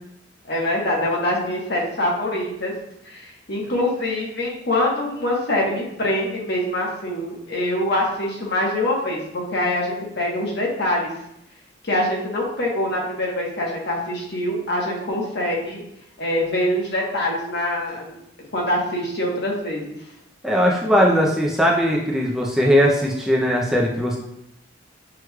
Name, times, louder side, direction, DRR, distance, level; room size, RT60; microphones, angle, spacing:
voice 1, 0.5-2.7 3.1-11.1 11.8-15.8 16.2-18.2 18.5-19.8, left 1 dB, 65° left, -2 dB, 1.1 m, -24 dB
voice 2, 20.4-24.2, equal, ahead, -3 dB, 0.5 m, -19 dB
6.1 x 3.1 x 2.3 m, 0.79 s
head